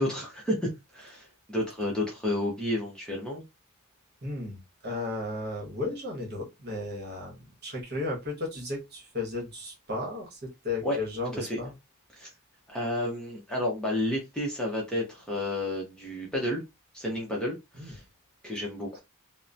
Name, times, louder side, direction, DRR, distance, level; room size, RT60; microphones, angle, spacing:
voice 1, 0.0-3.4 10.8-11.0 11.4-11.6 12.1-12.3 12.7-16.6 16.9-18.0 18.4-19.0, left 1 dB, 5° left, 0.7 m, -31 dB
voice 2, 4.2-11.7 17.8-18.0, left 2 dB, 45° right, 1.1 m, -34 dB
2.9 x 2.0 x 2.5 m
head